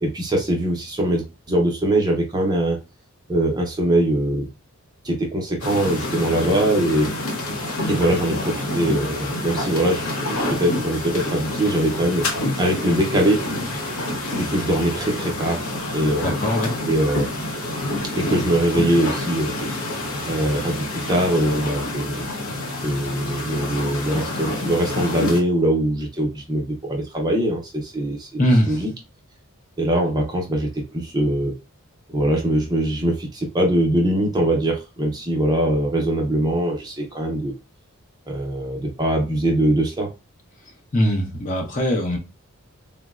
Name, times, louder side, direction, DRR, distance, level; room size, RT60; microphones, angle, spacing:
voice 1, 0.0-2.8 3.3-4.5 5.0-7.1 7.9-13.4 14.4-16.4 16.9-17.3 18.2-19.5 20.3-22.3 22.8-28.9 29.8-31.5 32.1-37.5 38.3-40.1, right 1 dB, 20° right, 0 dB, 0.5 m, -22 dB
sound 1, 5.6-25.4, left 1 dB, 80° left, 0.8 m, -28 dB
voice 2, 16.2-16.7 28.4-28.8 40.9-42.2, equal, 35° left, 2 dB, 0.7 m, -21 dB
3.9 x 2.1 x 2.3 m, 0.28 s
head